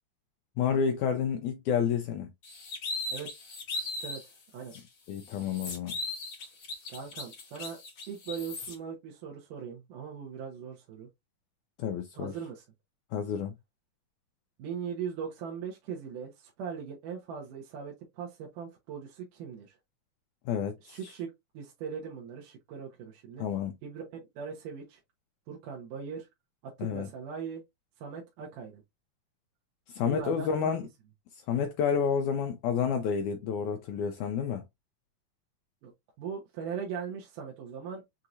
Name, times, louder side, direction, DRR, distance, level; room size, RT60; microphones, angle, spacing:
voice 1, 0.6-2.3 5.1-6.0 11.8-12.3 13.1-13.5 20.5-21.1 23.4-23.7 26.8-27.1 29.9-30.9 31.5-34.6, left 7 dB, 85° left, 1.8 m, -30 dB
sound 1, 2.4-4.3 4.7-4.8 5.2-8.7, left 2 dB, 60° left, 1.1 m, -38 dB
voice 2, 6.9-7.8 8.1-11.1 12.2-12.6 14.6-19.8 20.8-23.5 23.8-25.0 25.5-26.3 26.6-27.6 28.0-28.8 30.0-30.8 35.8-35.9 36.2-38.0, right 7 dB, 70° right, 2.5 m, -40 dB
6.3 x 2.8 x 2.5 m
omnidirectional pair, 4.0 m